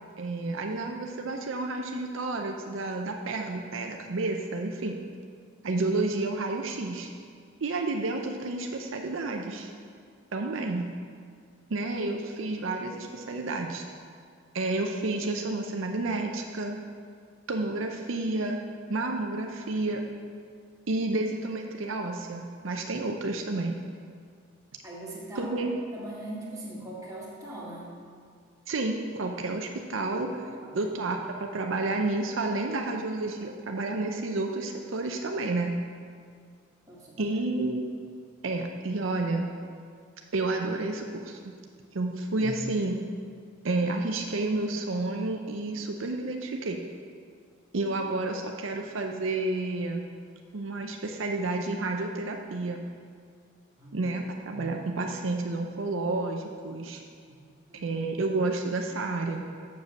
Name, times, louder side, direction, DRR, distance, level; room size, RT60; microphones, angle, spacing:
voice 1, 0.2-5.0 5.6-7.1 7.6-9.7 10.3-10.9 11.7-13.8 14.5-16.8 17.5-18.6 18.9-20.0 20.9-23.8 25.4-25.7 28.7-30.4 30.7-35.7 37.2-37.8 38.4-39.5 40.3-41.6 41.9-43.0 43.6-46.8 47.7-50.1 50.5-52.8 53.9-57.0 57.8-59.5, right 2 dB, 75° right, 3 dB, 0.6 m, -30 dB
voice 2, 24.8-25.5 25.9-27.9 30.6-30.7 36.9-37.3 42.3-42.5 53.8-54.0 54.4-54.7 57.3-57.8, right 1 dB, 15° right, -6 dB, 1.9 m, -41 dB
7.2 x 6.9 x 6.4 m, 2.1 s
head